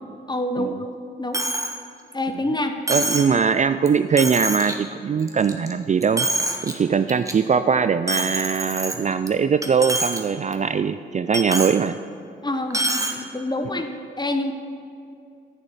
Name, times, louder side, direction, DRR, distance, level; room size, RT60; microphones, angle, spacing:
voice 1, 0.3-0.9 1.2-1.4 2.1-2.7 3.1-3.4 12.4-12.8 13.1-13.9 14.2-14.5, left 1 dB, 20° left, 6 dB, 1.1 m, -26 dB
Coin (dropping), 1.3-1.7 2.1-2.2 2.9-3.3 3.8-3.9 4.2-4.7 5.2-5.7 6.0-6.7 7.1-7.3 8.1-9.3 9.6-10.2 10.5-10.6 11.3-11.8 12.7-13.1, right 1 dB, 15° right, 1.4 m, -25 dB
voice 2, 2.9-6.3 6.6-12.0, right 6 dB, 35° right, 11 dB, 0.4 m, -21 dB
9.9 x 6.9 x 5.5 m, 2.5 s
supercardioid pair, 45°, 21 cm